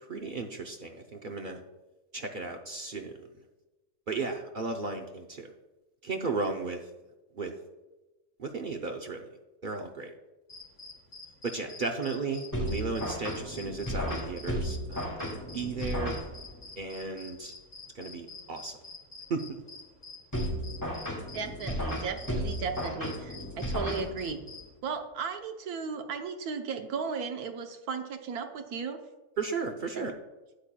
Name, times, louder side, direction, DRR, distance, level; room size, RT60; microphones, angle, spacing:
voice 1, 0.1-1.6 2.1-3.3 4.1-5.5 6.0-6.9 7.3-7.5 8.4-9.3 9.6-10.1 11.4-16.2 16.8-17.5 17.9-18.8 19.3-19.6 29.4-30.1, right 4 dB, 55° right, 3 dB, 0.6 m, -35 dB
sound 1, 10.5-24.8, left 3 dB, 35° left, 0.8 m, -48 dB
sound 2, 12.5-16.7 20.3-24.5, equal, 10° left, 1.7 m, -34 dB
voice 2, 21.3-24.4 24.8-29.0 29.9-30.0, right 5 dB, 80° right, 6 dB, 1.3 m, -35 dB
12.5 x 8.6 x 2.3 m, 1.1 s
omnidirectional pair, 1.6 m